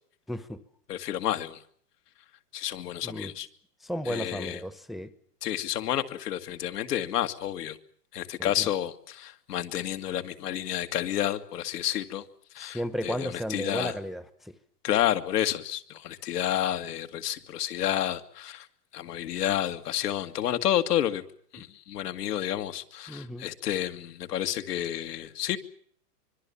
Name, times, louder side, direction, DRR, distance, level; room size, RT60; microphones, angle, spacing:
voice 1, 0.3-0.6 3.0-3.3 3.8-5.1 8.4-8.7 12.6-14.5 23.1-23.5, equal, ahead, 1.0 m, -34 dB
voice 2, 0.9-1.6 2.5-3.5 4.1-4.6 5.4-7.8 8.1-12.3 12.5-13.9 14.8-18.7 18.9-21.2 21.5-25.6, left 11 dB, 70° left, 2.4 m, -30 dB
25.0 x 22.5 x 7.2 m
hypercardioid pair, 130°, 48 cm